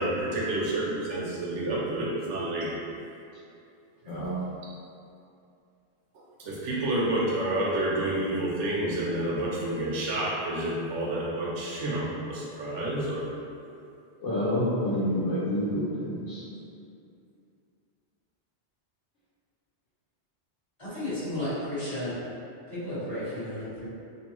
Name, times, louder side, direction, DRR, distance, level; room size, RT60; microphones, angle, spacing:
voice 1, 0.0-2.7 4.0-4.2 6.4-13.3, right 1 dB, 80° right, -5 dB, 0.9 m, -29 dB
voice 2, 14.2-16.4, left 1 dB, 90° left, -10 dB, 0.9 m, -28 dB
voice 3, 20.8-22.1 22.7-23.9, left 1 dB, 30° left, -15 dB, 1.2 m, -33 dB
2.6 x 2.2 x 2.9 m, 2.6 s
omnidirectional pair, 1.2 m